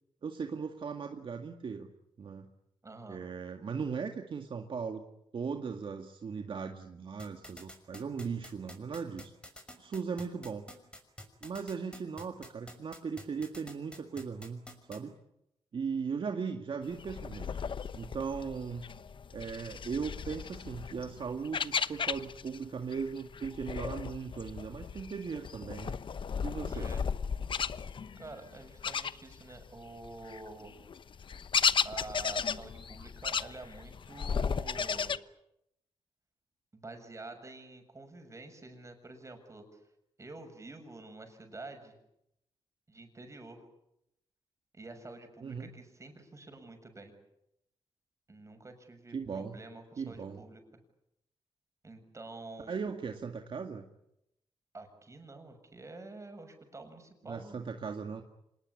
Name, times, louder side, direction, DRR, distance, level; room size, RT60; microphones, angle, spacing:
voice 1, 0.2-1.9 2.2-2.5 3.1-5.0 5.3-9.3 9.8-10.7 11.4-15.1 15.7-17.6 17.9-18.8 19.3-25.9 26.4-26.9 45.4-45.7 49.1-49.6 50.0-50.4 52.7-53.9 57.2-58.2, right 5 dB, 55° right, 5 dB, 2.0 m, -38 dB
voice 2, 2.8-3.2 26.7-27.0 28.2-30.7 31.8-35.1 36.7-39.7 40.2-42.0 42.9-43.6 44.7-47.1 48.3-50.6 51.8-52.8 54.7-57.6, right 2 dB, 30° right, 6 dB, 7.0 m, -48 dB
sound 1, 7.2-15.0, left 1 dB, 10° left, 6.0 m, -47 dB
sound 2, 16.9-22.6 22.9-29.7 30.0-35.2, left 6 dB, 55° left, 0.9 m, -35 dB
26.5 x 20.0 x 9.9 m, 0.82 s
cardioid pair, 85°, 10 cm